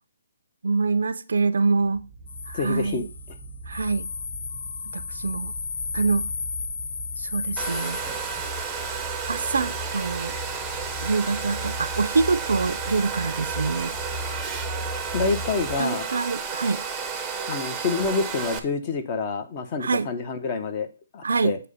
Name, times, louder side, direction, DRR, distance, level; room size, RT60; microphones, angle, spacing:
voice 1, 0.6-2.0 2.5-3.1 3.7-4.1 4.9-5.5 5.9-6.3 7.2-8.0 9.3-10.4 11.0-13.9 15.8-16.8 19.8-20.1 21.2-21.5, right 4 dB, 70° right, 0.5 m, -25 dB
sound 1, 1.8-15.8, equal, 20° left, 2.0 m, -39 dB
sound 2, 2.3-9.1, left 5 dB, 65° left, 0.3 m, -34 dB
voice 2, 2.5-3.1 15.1-16.1 17.5-21.6, left 4 dB, 35° left, 0.8 m, -27 dB
Domestic sounds home sounds, 7.6-18.6, right 6 dB, 10° right, 0.6 m, -32 dB
8.1 x 2.9 x 5.2 m
hypercardioid pair, 145°, 0 cm